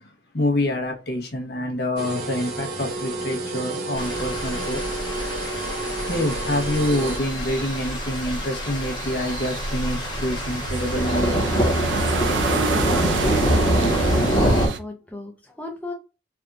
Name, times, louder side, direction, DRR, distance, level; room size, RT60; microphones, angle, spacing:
voice 1, 0.3-4.8 6.1-11.4, left 1 dB, 55° left, 0.9 m, -26 dB
sound 1, 2.0-7.2, right 2 dB, 60° right, 0.9 m, -31 dB
sound 2, 4.0-14.7, equal, 25° left, 1.1 m, -25 dB
sound 3, 6.8-14.8, right 5 dB, 75° right, 0.4 m, -30 dB
voice 2, 12.9-15.9, left 1 dB, 10° left, 0.6 m, -38 dB
3.4 x 2.4 x 2.5 m
head